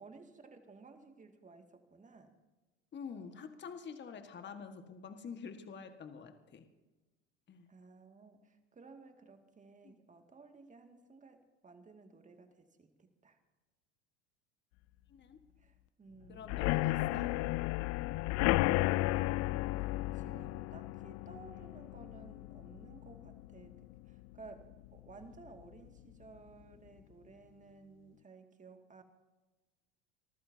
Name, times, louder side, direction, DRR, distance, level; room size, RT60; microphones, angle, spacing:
voice 1, 0.0-2.4 7.7-13.4 15.6-16.4 16.9-17.6 18.6-19.2 20.1-29.0, right 4 dB, 20° right, 5 dB, 2.3 m, -56 dB
voice 2, 2.9-6.6 7.5-7.7 9.8-9.9 15.1-15.4 16.3-17.2, left 6 dB, 30° left, 7 dB, 1.7 m, -47 dB
sound 1, 16.4-24.1 24.5-24.9 25.1-25.2 25.6-25.7, left 19 dB, 45° left, 0.5 m, -33 dB
27.0 x 14.0 x 2.8 m, 1.1 s
hypercardioid pair, 90°, 35 cm